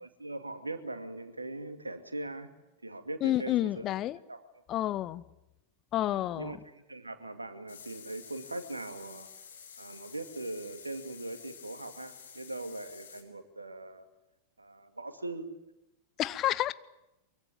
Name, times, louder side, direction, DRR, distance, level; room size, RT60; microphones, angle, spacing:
voice 1, 0.0-2.5 2.8-3.8 4.3-4.4 6.0-9.3 9.8-14.1 14.6-15.5, right 2 dB, 80° right, 9 dB, 2.4 m, -40 dB
voice 2, 3.2-4.2 4.7-5.2 5.9-6.6 16.2-16.7, left 13 dB, 35° left, 18 dB, 0.9 m, -29 dB
sound 1, 7.7-13.2, left 7 dB, 65° left, 3.9 m, -50 dB
24.0 x 23.5 x 8.9 m, 0.92 s
figure-of-eight pair, 90°, 0 cm